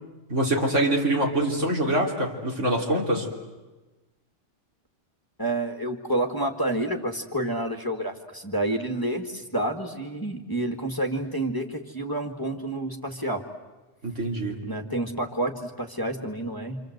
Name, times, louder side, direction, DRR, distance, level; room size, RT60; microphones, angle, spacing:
voice 1, 0.3-3.3 14.0-14.6, right 1 dB, 75° right, 0 dB, 3.6 m, -24 dB
voice 2, 5.4-13.4 14.7-16.8, right 1 dB, 15° left, 4 dB, 1.8 m, -29 dB
27.5 x 27.0 x 8.0 m, 1.2 s
omnidirectional pair, 1.3 m